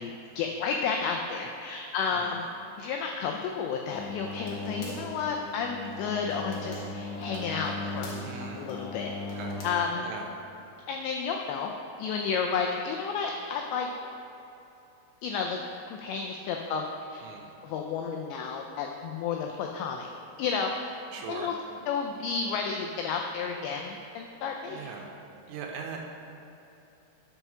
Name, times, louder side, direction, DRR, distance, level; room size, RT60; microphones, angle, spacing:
voice 1, 0.0-2.5 2.8-9.1 9.6-10.1 10.9-11.7 12.0-13.9 15.2-15.6 15.9-17.2 17.6-20.1 20.4-21.0 21.3-21.5 21.9-24.9, left 5 dB, 85° left, 2 dB, 2.5 m, -32 dB
sound 1, 3.9-9.7, left 2 dB, 65° left, 2.0 m, -37 dB
voice 2, 8.2-8.9 9.3-9.7 9.9-10.3 17.2-17.5 21.1-21.5 24.7-25.1 25.5-26.0, right 5 dB, 80° right, 1 dB, 2.9 m, -40 dB
11.0 x 5.5 x 6.0 m, 2.9 s
omnidirectional pair, 5.7 m